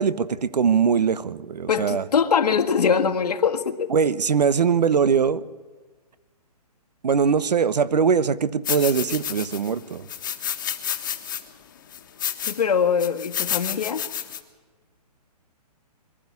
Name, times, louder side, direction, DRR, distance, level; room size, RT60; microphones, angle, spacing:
voice 1, 0.0-2.0 3.9-5.4 7.0-10.1, right 6 dB, 90° right, 17 dB, 1.1 m, -21 dB
voice 2, 1.7-3.9 12.5-14.0, left 6 dB, 70° left, 5 dB, 1.7 m, -22 dB
sound 1, 8.6-9.7 10.1-11.4 11.9-12.6 13.0-14.4, left 10 dB, 30° left, 1.4 m, -30 dB
23.5 x 13.0 x 9.7 m, 1.4 s
hypercardioid pair, 180°, 20 cm